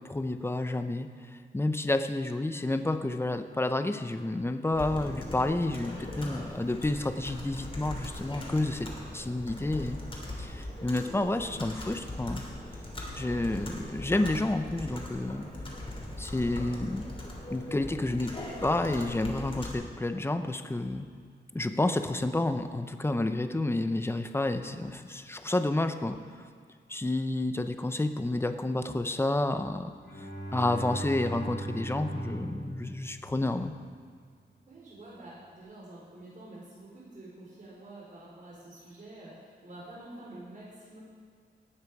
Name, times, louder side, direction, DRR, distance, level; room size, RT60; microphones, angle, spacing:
voice 1, 0.0-1.1 1.5-8.9 9.1-10.0 10.4-12.4 13.1-15.4 16.2-17.0 17.5-18.3 18.6-21.1 21.5-26.2 26.9-29.9 30.5-33.7, left 2 dB, 15° left, 8 dB, 0.7 m, -30 dB
Computer keyboard, 4.7-19.7, left 1 dB, 30° left, 2.9 m, -40 dB
Bowed string instrument, 29.9-33.7, right 2 dB, 85° left, 3.8 m, -39 dB
voice 2, 34.7-41.0, right 1 dB, 45° right, -6 dB, 4.1 m, -48 dB
18.0 x 8.9 x 4.8 m, 2.1 s
wide cardioid pair, 115°, 18 cm